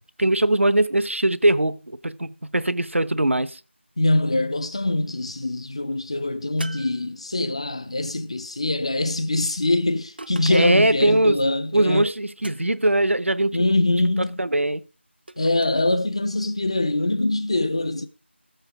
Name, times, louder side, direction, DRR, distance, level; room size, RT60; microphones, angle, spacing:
voice 1, 0.2-3.6 10.5-11.4 11.7-13.7 14.4-14.8, right 1 dB, 80° right, 0.9 m, -21 dB
voice 2, 4.0-12.1 13.5-14.4 15.4-18.1, left 2 dB, 30° left, 0.6 m, -23 dB
sound 1, 6.6-7.7 10.2-11.0 12.4-13.0 15.3-15.9, right 2 dB, 50° right, 0.6 m, -41 dB
14.0 x 7.8 x 4.8 m
figure-of-eight pair, 170°, 7 cm